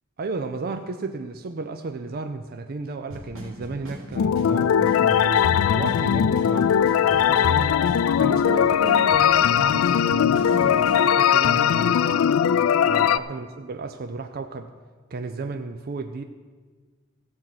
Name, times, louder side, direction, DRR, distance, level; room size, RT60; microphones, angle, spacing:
voice 1, 0.2-7.8 8.2-12.3 12.8-14.7 15.1-16.2, right 3 dB, 45° right, 7 dB, 0.5 m, -33 dB
Drum kit / Snare drum / Bass drum, 3.1-11.1, equal, 70° right, 3.4 m, -38 dB
sound 1, 4.2-13.2, left 8 dB, 85° left, 0.3 m, -20 dB
14.0 x 7.5 x 5.9 m, 1.5 s
head